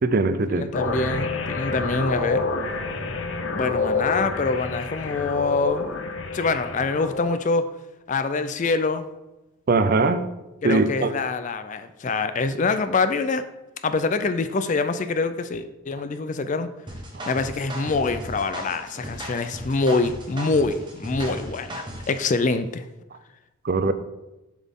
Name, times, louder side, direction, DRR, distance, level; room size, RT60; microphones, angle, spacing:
voice 1, 0.0-0.7 9.7-10.3 10.6-11.1 17.1-17.2 23.6-23.9, right 3 dB, 40° right, 11 dB, 0.4 m, -21 dB
voice 2, 0.5-2.5 3.5-7.6 8.1-9.1 10.6-13.4 13.8-16.7 17.3-22.8, left 3 dB, 35° left, 10 dB, 0.4 m, -25 dB
sound 1, 0.7-7.2, left 3 dB, 60° left, 0.7 m, -28 dB
sound 2, 16.9-22.2, right 1 dB, 20° right, 1.2 m, -36 dB
7.3 x 6.0 x 3.6 m, 0.99 s
head